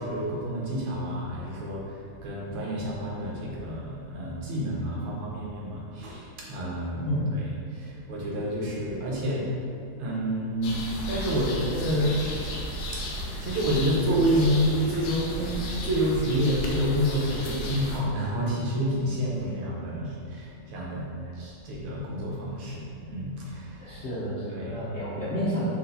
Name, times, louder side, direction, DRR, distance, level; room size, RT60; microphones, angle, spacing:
voice 1, 0.0-7.1 7.7-9.5 10.0-10.8 11.1-12.2 12.9-13.0 13.4-21.1 21.4-24.0 24.5-24.8, equal, 85° right, -4 dB, 1.8 m, -28 dB
sound 1, 10.6-18.0, equal, 85° left, 1.5 m, -34 dB
voice 2, 23.8-25.7, equal, 55° left, -11 dB, 0.7 m, -30 dB
4.6 x 2.9 x 3.8 m, 2.4 s
omnidirectional pair, 2.3 m